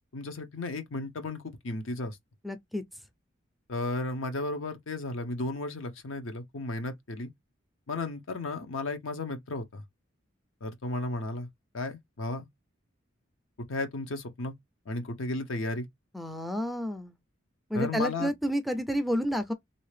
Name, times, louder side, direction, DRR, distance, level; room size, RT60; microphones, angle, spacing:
voice 1, 0.1-2.2 3.7-7.3 7.9-9.8 10.6-11.5 11.7-12.5 13.7-14.5 14.9-15.9 17.7-18.3, left 2 dB, 75° left, 0.8 m, -34 dB
voice 2, 2.4-2.8 16.1-17.1 17.7-19.5, equal, ahead, 0.4 m, -30 dB
3.2 x 2.7 x 3.2 m
head